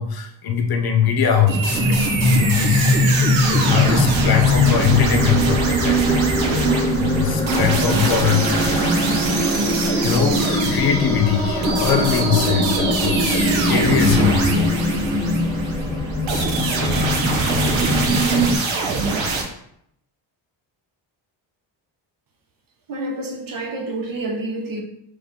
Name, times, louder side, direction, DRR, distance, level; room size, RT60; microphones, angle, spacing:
voice 1, 0.0-2.0 2.2-9.5 9.9-15.4 18.5-18.8 19.1-19.4, left 7 dB, 50° left, 0.8 m, -23 dB
sound 1, 1.5-19.4, right 3 dB, 80° right, 1.1 m, -24 dB
sound 2, 1.7-18.6, left 1 dB, 10° left, 1.5 m, -21 dB
voice 2, 22.9-24.8, right 2 dB, 45° right, 0.9 m, -28 dB
3.9 x 3.3 x 3.6 m
cardioid pair, 100°, 46 cm